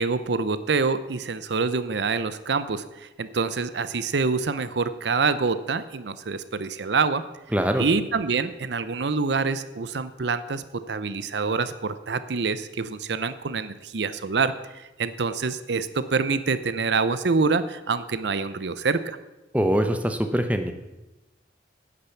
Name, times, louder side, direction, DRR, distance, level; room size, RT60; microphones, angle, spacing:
voice 1, 0.0-7.2 7.8-19.2, right 4 dB, 70° right, 13 dB, 0.6 m, -26 dB
voice 2, 7.5-7.8 19.5-20.7, equal, 10° right, 7 dB, 0.8 m, -23 dB
10.0 x 8.6 x 7.1 m, 1.0 s
head